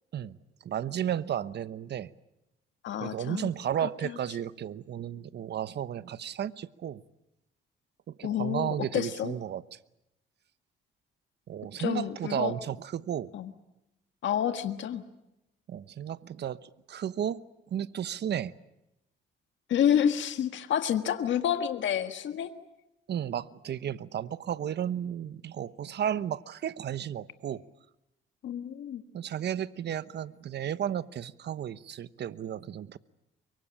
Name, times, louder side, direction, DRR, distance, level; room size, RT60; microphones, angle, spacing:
voice 1, 0.6-2.1 3.0-7.0 8.1-9.8 11.5-13.3 15.7-17.4 17.7-18.5 23.1-27.6 29.1-33.0, right 9 dB, 60° right, 16 dB, 1.0 m, -33 dB
voice 2, 2.8-3.5 8.2-9.4 11.8-12.5 13.3-13.5 14.2-15.0 19.7-22.5 28.4-29.0, left 9 dB, 70° left, 8 dB, 1.6 m, -29 dB
23.5 x 23.5 x 8.8 m, 0.90 s
cardioid pair, 90°, 20 cm